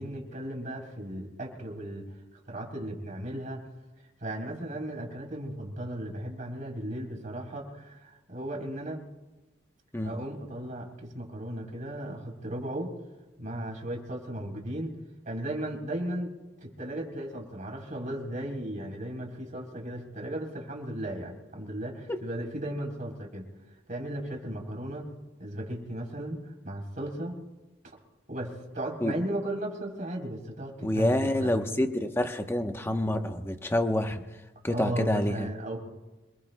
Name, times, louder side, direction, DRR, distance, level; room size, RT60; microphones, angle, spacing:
voice 1, 0.0-2.1 2.5-3.7 4.2-9.0 10.0-12.9 13.4-14.9 15.2-16.3 16.6-23.4 23.9-25.1 25.4-26.4 26.6-27.3 28.3-31.5 34.7-35.8, right 1 dB, 40° right, 1 dB, 3.6 m, -36 dB
voice 2, 30.8-34.2 34.6-35.5, left 1 dB, 15° left, 6 dB, 0.9 m, -27 dB
26.5 x 21.0 x 2.2 m, 1.1 s
head